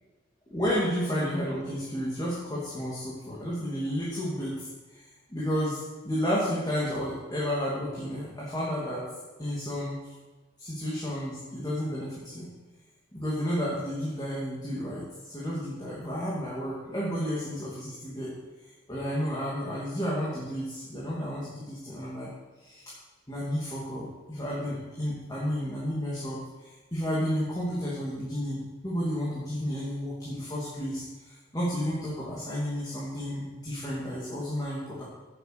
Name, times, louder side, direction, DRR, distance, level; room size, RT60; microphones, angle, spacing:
voice 1, 0.5-4.7 5.3-9.1 9.4-9.9 10.6-12.5 13.1-18.3 18.9-22.3 22.6-22.9 23.3-35.0, equal, 20° left, -8 dB, 2.8 m, -32 dB
8.1 x 8.0 x 8.2 m, 1.2 s
head